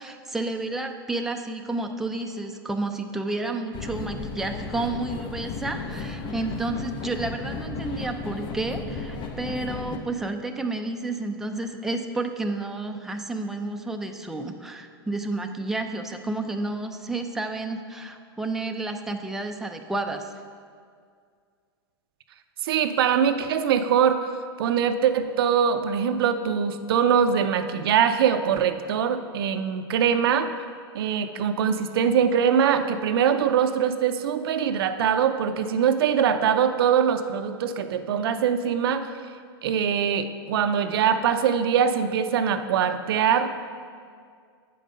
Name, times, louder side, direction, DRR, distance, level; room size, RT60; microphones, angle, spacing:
voice 1, 0.0-20.3, right 2 dB, 5° right, 4 dB, 0.5 m, -31 dB
sound 1, 3.7-10.0, left 4 dB, 40° left, 0.9 m, -34 dB
voice 2, 22.6-24.3 24.6-30.5 30.9-39.1 39.6-43.6, right 8 dB, 70° right, 9 dB, 0.5 m, -22 dB
8.4 x 5.3 x 5.2 m, 2.1 s
hypercardioid pair, 110°, 13 cm